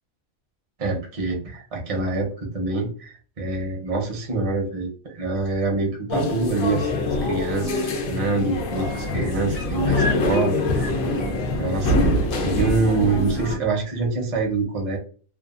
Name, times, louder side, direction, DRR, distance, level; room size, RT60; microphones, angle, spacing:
voice 1, 0.8-6.9 7.2-10.9 11.6-12.1 12.4-15.0, right 3 dB, 35° right, 1 dB, 0.6 m, -25 dB
sound 1, 6.1-13.6, left 2 dB, 70° left, 1.0 m, -24 dB
sound 2, 8.1-12.2 13.8-13.9, left 2 dB, 50° left, 0.6 m, -36 dB
2.8 x 2.2 x 2.4 m, 0.40 s
omnidirectional pair, 1.5 m